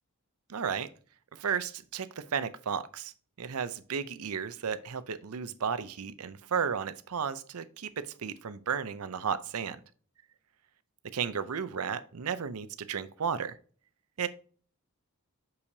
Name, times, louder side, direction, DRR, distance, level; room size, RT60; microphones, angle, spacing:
voice 1, 0.5-0.9 1.3-3.1 3.4-9.8 11.1-13.6 14.2-14.3, right 6 dB, 80° right, 13 dB, 0.6 m, -33 dB
6.3 x 5.8 x 2.7 m, 0.42 s
head